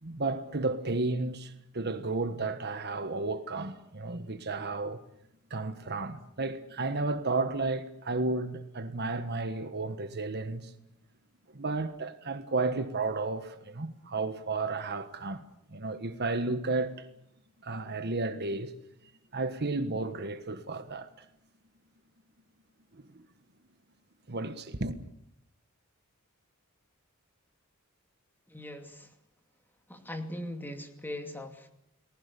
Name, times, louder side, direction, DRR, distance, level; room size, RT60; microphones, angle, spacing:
voice 1, 0.0-5.0 5.5-10.7 11.5-15.4 15.7-17.1 17.6-18.7 19.3-21.2 22.9-23.2 24.3-25.0, right 3 dB, 50° right, 1.4 m, -33 dB
voice 2, 28.5-29.1 29.9-31.7, left 1 dB, 10° left, 2.6 m, -40 dB
30.0 x 19.5 x 6.9 m
head